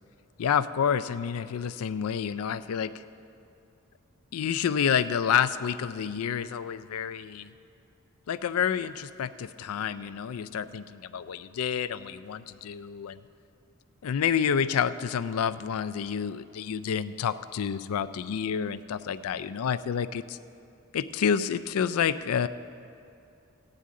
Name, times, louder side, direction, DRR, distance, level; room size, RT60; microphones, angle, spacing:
voice 1, 0.4-2.9 4.3-7.5 8.3-13.2 14.0-20.4 20.9-22.5, left 7 dB, 80° left, 14 dB, 0.4 m, -29 dB
15.0 x 9.8 x 3.7 m, 2.6 s
head